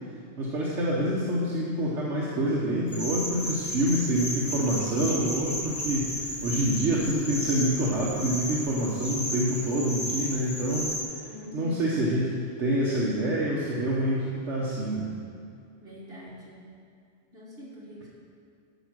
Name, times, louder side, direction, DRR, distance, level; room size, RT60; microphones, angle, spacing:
voice 1, 0.4-11.2 11.5-12.3 12.6-15.1, right 1 dB, 75° right, -5 dB, 1.4 m, -27 dB
sound 1, 2.9-11.0, equal, 20° left, 1.2 m, -33 dB
voice 2, 11.2-12.1 15.8-16.7 17.3-18.1, left 1 dB, 55° right, -6 dB, 2.5 m, -44 dB
12.5 x 5.2 x 6.2 m, 2.3 s
omnidirectional pair, 1.2 m